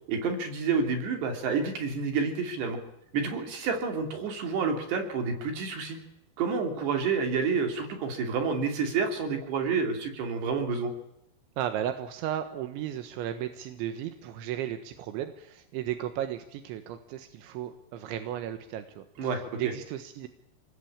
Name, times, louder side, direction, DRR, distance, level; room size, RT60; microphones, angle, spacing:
voice 1, 0.1-2.8 3.1-6.0 6.4-10.9 19.2-19.6, right 5 dB, 65° right, 4 dB, 4.9 m, -29 dB
voice 2, 11.6-20.3, right 11 dB, 85° right, 8 dB, 3.5 m, -35 dB
26.0 x 19.5 x 8.7 m, 0.82 s
omnidirectional pair, 5.2 m